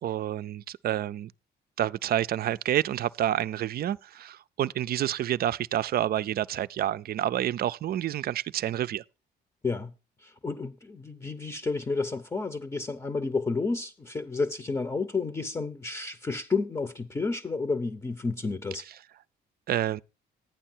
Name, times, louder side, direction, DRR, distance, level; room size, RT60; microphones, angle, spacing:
voice 1, 0.0-1.3 1.8-9.0 19.7-20.0, right 11 dB, 55° right, 0.5 m, -28 dB
voice 2, 10.2-18.8, left 4 dB, 20° left, 0.7 m, -31 dB
12.0 x 9.0 x 4.4 m
cardioid pair, 85°, 19 cm